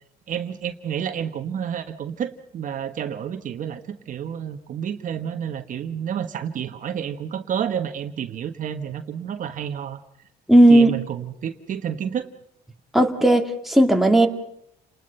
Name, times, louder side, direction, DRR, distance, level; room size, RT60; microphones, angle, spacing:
voice 1, 0.3-10.0 10.7-12.3, right 8 dB, 50° right, 8 dB, 1.4 m, -30 dB
voice 2, 10.5-10.9 12.9-14.3, right 1 dB, ahead, 3 dB, 2.1 m, -15 dB
29.5 x 20.0 x 5.7 m, 0.73 s
cardioid pair, 110°, 17 cm